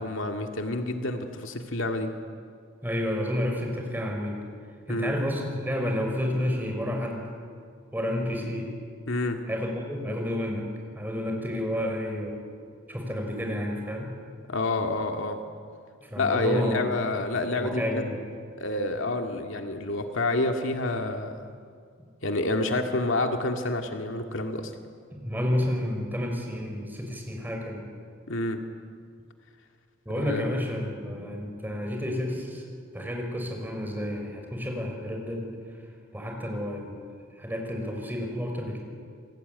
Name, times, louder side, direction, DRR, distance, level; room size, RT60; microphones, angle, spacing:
voice 1, 0.0-2.1 4.9-5.1 9.1-9.4 14.5-15.4 16.2-18.0 18.6-21.3 22.2-24.7 28.3-28.6 30.2-30.5, left 2 dB, 70° left, 4 dB, 2.1 m, -28 dB
voice 2, 2.8-4.4 4.9-7.3 7.9-8.7 9.5-10.6 10.9-12.4 12.9-14.1 16.0-16.8 17.6-18.2 25.1-27.8 30.1-32.6 32.9-35.5 36.1-37.0 37.4-38.8, equal, 10° right, 1 dB, 5.7 m, -30 dB
28.5 x 22.0 x 9.6 m, 2.2 s
head